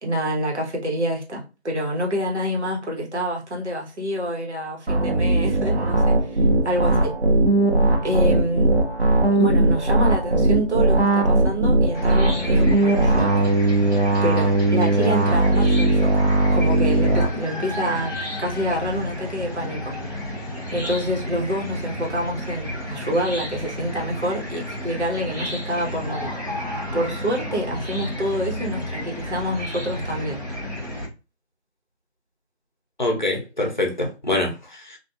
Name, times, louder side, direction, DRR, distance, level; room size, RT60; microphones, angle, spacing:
voice 1, 0.0-7.1 8.0-8.7 9.4-13.3 14.2-16.1 16.5-18.1 18.4-20.0 20.7-26.3 26.9-30.4, equal, 85° right, 1.1 m, -27 dB
sound 1, 4.9-17.3, right 2 dB, 60° right, 0.9 m, -19 dB
Chicken rooster / Cricket, 11.9-31.1, left 1 dB, 35° right, 1.0 m, -32 dB
voice 2, 33.0-35.0, left 2 dB, 45° left, 0.7 m, -25 dB
2.4 x 2.3 x 2.6 m
figure-of-eight pair, 175°, 33 cm